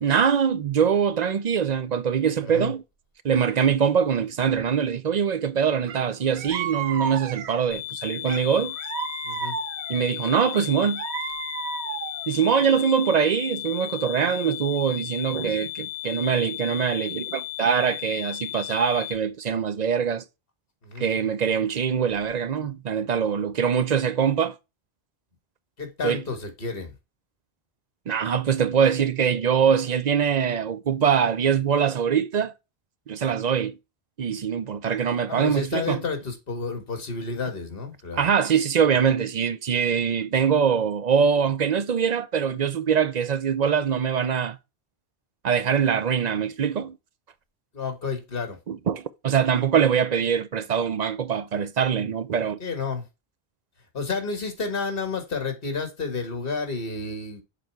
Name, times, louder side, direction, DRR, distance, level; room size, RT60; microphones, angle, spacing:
voice 1, 0.0-2.8 3.2-8.8 9.9-11.0 12.3-20.2 21.0-24.5 26.0-26.2 28.1-32.5 33.1-33.8 34.2-36.0 38.1-44.6 45.4-47.0 48.7-52.6, right 7 dB, 50° right, 0.6 m, -23 dB
voice 2, 2.4-2.7 9.2-9.6 20.8-21.1 25.8-26.9 35.3-38.2 47.7-48.6 52.6-53.0 53.9-57.4, left 4 dB, 60° left, 1.9 m, -30 dB
sound 1, 5.9-6.0 6.3-7.7 8.3-10.0 10.5-12.3, right 7 dB, 90° right, 1.0 m, -33 dB
sound 2, 7.7-19.1, left 17 dB, 45° left, 2.3 m, -35 dB
6.9 x 4.1 x 4.5 m
omnidirectional pair, 1.1 m